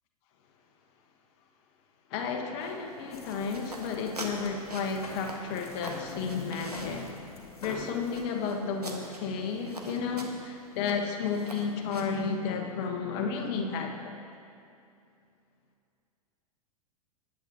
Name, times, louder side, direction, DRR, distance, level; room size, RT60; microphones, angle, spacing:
voice 1, 2.1-7.2 7.6-14.1, left 5 dB, 40° left, 3 dB, 1.3 m, -32 dB
sound 1, 2.6-12.3, right 2 dB, 80° right, 1.3 m, -45 dB
sound 2, 3.1-8.2, left 3 dB, 70° left, 1.7 m, -45 dB
19.0 x 9.0 x 2.9 m, 2.5 s
figure-of-eight pair, 95°, 19 cm